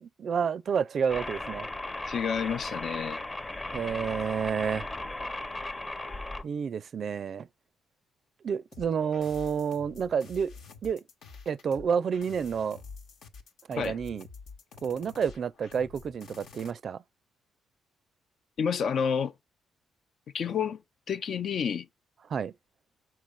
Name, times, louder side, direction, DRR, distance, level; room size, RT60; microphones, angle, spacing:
voice 1, 0.2-1.7 3.7-4.9 6.4-7.5 8.4-10.5 10.8-11.0 11.5-12.8 13.7-14.3 14.8-17.0 22.3-22.5, right 7 dB, 55° right, 0.4 m, -29 dB
sound 1, 1.1-6.4, left 2 dB, 25° left, 0.8 m, -36 dB
voice 2, 2.1-3.2 13.8-14.0 18.6-19.3 20.3-20.8 21.1-21.9, left 7 dB, 60° left, 0.5 m, -29 dB
sound 2, 8.7-16.7, left 4 dB, 75° left, 1.2 m, -48 dB
6.3 x 4.5 x 5.3 m
cardioid pair, 90°, 0 cm